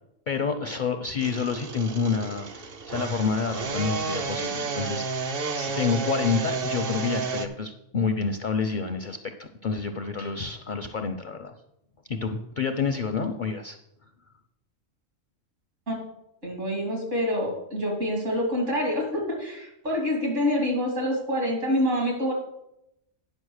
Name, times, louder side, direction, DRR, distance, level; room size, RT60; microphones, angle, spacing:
voice 1, 0.3-11.5 12.1-13.8, left 5 dB, 55° left, 6 dB, 0.6 m, -28 dB
sound 1, 1.2-7.5, right 4 dB, 50° right, 0.9 m, -31 dB
voice 2, 16.4-22.3, equal, 65° right, -1 dB, 3.2 m, -26 dB
9.8 x 5.3 x 6.4 m, 0.84 s
omnidirectional pair, 1.3 m